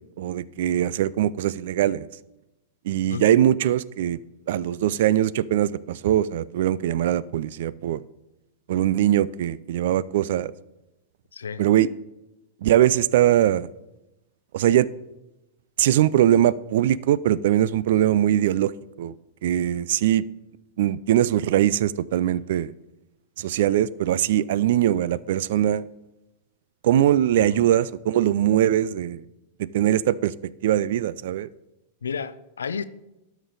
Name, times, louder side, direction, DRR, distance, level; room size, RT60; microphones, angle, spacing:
voice 1, 0.2-2.1 2.9-4.2 4.5-8.0 8.7-10.5 11.6-11.9 12.6-13.7 14.5-14.9 15.8-18.7 19.0-19.1 19.4-20.2 20.8-22.7 23.4-25.8 26.8-29.2 29.7-30.3 30.6-31.5, right 12 dB, 65° right, 0.3 m, -21 dB
voice 2, 11.3-11.6 27.4-27.7 32.0-32.8, left 6 dB, 85° left, 0.4 m, -32 dB
12.5 x 5.1 x 3.9 m
hypercardioid pair, 105°, 0 cm